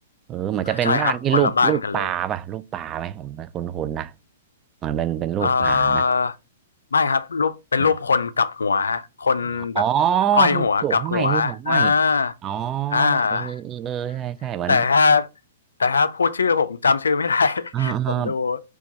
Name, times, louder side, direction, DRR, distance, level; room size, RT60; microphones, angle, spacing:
voice 1, 0.3-4.1 4.8-6.0 7.8-7.9 9.8-11.9 12.4-14.8 17.7-18.3, right 10 dB, 25° right, 0.3 m, -25 dB
voice 2, 0.8-2.1 5.4-6.3 6.9-9.8 10.3-12.3 12.9-13.5 14.7-15.3 15.8-18.6, left 5 dB, 80° left, 0.4 m, -21 dB
4.4 x 2.3 x 4.0 m
hypercardioid pair, 115°, 0 cm